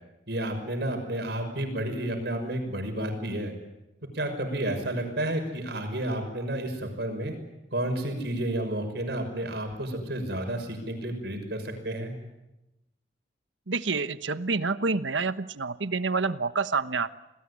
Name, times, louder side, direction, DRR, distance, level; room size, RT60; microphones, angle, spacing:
voice 1, 0.3-3.5 4.1-7.4 7.7-12.1, right 1 dB, 60° right, 6 dB, 6.0 m, -31 dB
voice 2, 13.7-17.1, right 4 dB, 90° right, 13 dB, 1.1 m, -28 dB
29.0 x 20.0 x 9.9 m, 0.97 s
head